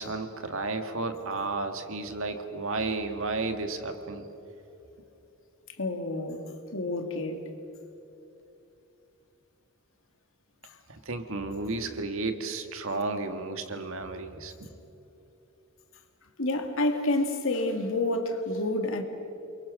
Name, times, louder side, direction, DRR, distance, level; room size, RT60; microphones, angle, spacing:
voice 1, 0.0-4.3 10.9-14.7, right 3 dB, 65° right, 1.9 m, -33 dB
voice 2, 5.8-7.4 16.4-19.0, left 2 dB, 65° left, 2.5 m, -29 dB
29.0 x 23.0 x 6.6 m
head